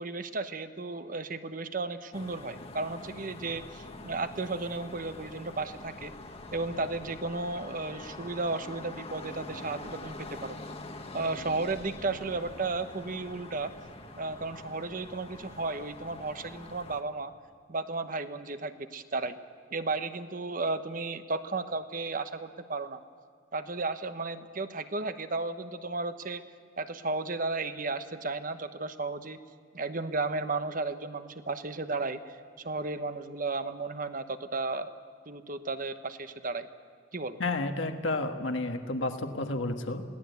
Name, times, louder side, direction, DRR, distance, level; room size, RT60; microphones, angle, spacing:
voice 1, 0.0-6.1 6.5-10.6 11.1-13.7 14.1-17.3 17.7-19.4 19.7-23.0 23.5-26.4 26.8-29.4 29.7-34.9 35.3-36.7 37.1-37.4, right 3 dB, 45° right, 10 dB, 1.0 m, -34 dB
sound 1, 2.1-17.0, left 2 dB, 30° left, 1.3 m, -45 dB
voice 2, 37.4-40.0, left 2 dB, 75° left, 5 dB, 1.6 m, -31 dB
22.5 x 17.5 x 8.2 m, 2.2 s
head